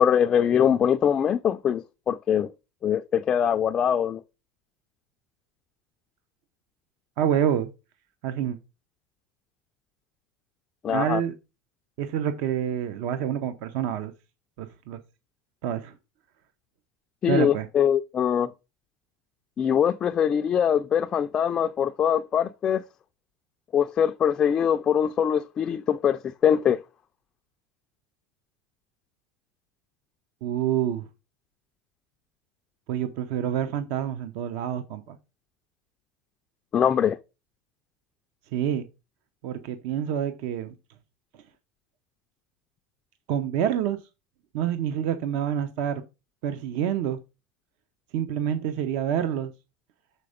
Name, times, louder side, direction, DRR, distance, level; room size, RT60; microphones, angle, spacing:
voice 1, 0.0-2.5 2.8-4.2 10.8-11.2 17.2-18.5 19.6-22.8 23.7-26.8 36.7-37.2, left 8 dB, 25° left, 0.3 m, -23 dB
voice 2, 7.2-7.7 8.2-8.6 10.9-11.3 12.0-14.1 14.6-15.0 15.6-15.9 17.3-17.7 30.4-31.1 32.9-35.2 38.5-38.9 39.4-40.7 43.3-44.0 44.5-46.0 46.4-47.2 48.1-49.5, right 9 dB, 60° right, 0.7 m, -27 dB
6.7 x 4.3 x 5.0 m
supercardioid pair, 145°, 3 cm